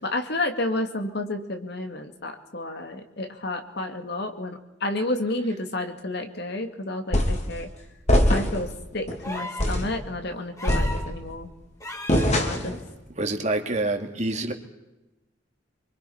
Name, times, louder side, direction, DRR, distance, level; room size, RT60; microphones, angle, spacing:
voice 1, 0.0-7.7 8.3-11.5 12.4-12.8, left 2 dB, 60° left, 6 dB, 2.4 m, -31 dB
sound 1, 7.1-7.5 8.1-8.7 9.1-9.2 9.6-10.0 10.7-11.4 12.1-12.8, left 1 dB, 40° left, 2.9 m, -22 dB
sound 2, 9.2-9.8 10.6-11.1 11.8-12.3 13.8-13.9, left 1 dB, 15° left, 3.3 m, -35 dB
voice 2, 13.2-14.5, right 2 dB, 40° right, 4 dB, 2.4 m, -26 dB
25.5 x 23.5 x 5.7 m, 0.99 s
head